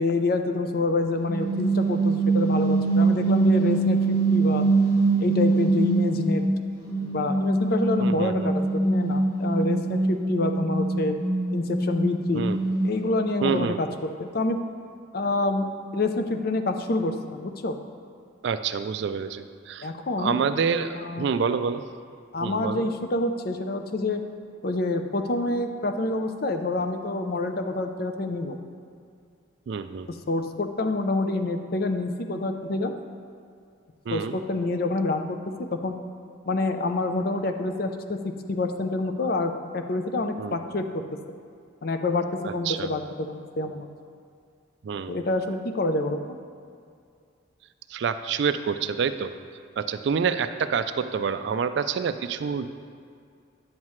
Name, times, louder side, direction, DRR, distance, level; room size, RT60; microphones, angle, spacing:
voice 1, 0.0-4.6 5.2-6.4 7.0-11.2 11.5-12.5 12.8-13.9 14.2-14.6 15.1-15.7 15.9-17.8 19.8-20.4 20.9-21.3 22.3-24.2 24.6-28.6 30.1-32.9 34.1-35.4 35.7-36.0 36.5-38.2 38.5-40.8 41.8-43.9 45.1-46.3, left 2 dB, 50° left, 6 dB, 0.5 m, -27 dB
sound 1, 1.2-6.5 6.8-13.0, right 3 dB, 20° left, 2.2 m, -23 dB
voice 2, 8.0-8.5 12.3-12.6 13.4-13.8 18.4-19.9 20.2-21.8 22.4-22.8 29.7-30.1 34.1-34.4 40.4-40.6 42.4-42.9 44.8-45.1 47.9-49.3 49.8-52.7, right 6 dB, 60° right, 11 dB, 0.3 m, -27 dB
9.6 x 7.3 x 3.1 m, 2.3 s
head